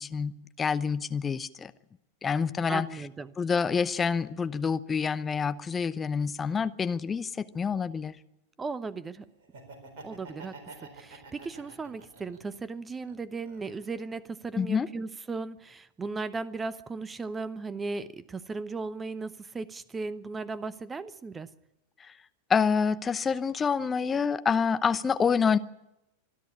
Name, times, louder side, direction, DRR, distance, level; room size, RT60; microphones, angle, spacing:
voice 1, 0.0-1.7 2.2-2.9 3.4-8.2 14.6-14.9 22.5-25.6, left 6 dB, 20° left, 13 dB, 0.8 m, -27 dB
voice 2, 2.7-3.3 8.6-9.3 10.0-21.5, right 4 dB, 15° right, 17 dB, 0.9 m, -36 dB
Laughter, 9.4-12.6 13.0-14.1, right 3 dB, 50° right, 4.3 m, -48 dB
26.0 x 11.0 x 9.8 m, 0.91 s
figure-of-eight pair, 90°, 0 cm